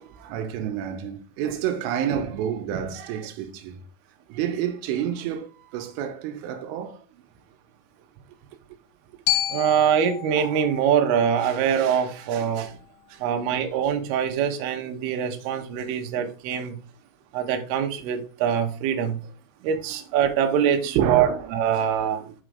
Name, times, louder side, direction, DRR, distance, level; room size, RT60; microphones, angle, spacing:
voice 1, 0.0-3.8 4.3-7.2 12.7-12.8 13.3-13.6 16.6-16.7 19.6-19.7 20.9-21.5 22.2-22.3, right 9 dB, 90° right, 3.3 m, -29 dB
Glockenspiel, 9.3-13.4, left 13 dB, 80° left, 3.0 m, -32 dB
voice 2, 9.3-12.7 13.2-16.8 17.3-19.2 19.6-22.2, right 8 dB, 70° right, 2.6 m, -24 dB
6.5 x 5.0 x 4.9 m
omnidirectional pair, 5.6 m